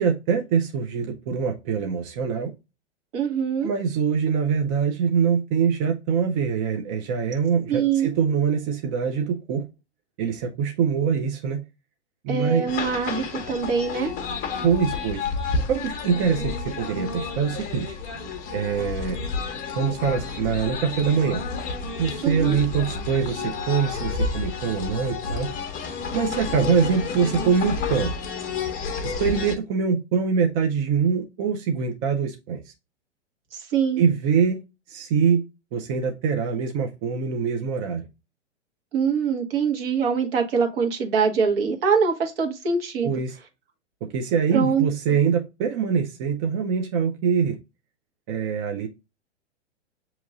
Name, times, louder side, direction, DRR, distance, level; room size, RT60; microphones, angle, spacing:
voice 1, 0.0-2.5 3.6-9.7 10.2-11.6 12.2-12.7 14.6-15.3 15.7-18.0 18.5-19.2 19.8-21.4 22.0-25.5 26.1-28.1 29.0-32.7 34.0-34.6 34.9-35.4 35.7-38.1 43.0-43.4 44.0-47.6 48.3-48.9, right 6 dB, 30° right, 3 dB, 0.5 m, -24 dB
voice 2, 3.1-3.7 7.7-8.1 12.3-14.1 22.2-22.6 33.7-34.0 38.9-43.1 44.5-44.9, right 6 dB, 50° right, 3 dB, 1.4 m, -23 dB
sound 1, 12.7-29.6, left 4 dB, 25° left, 0.8 m, -30 dB
6.9 x 2.9 x 2.5 m, 0.26 s
hypercardioid pair, 115°, 36 cm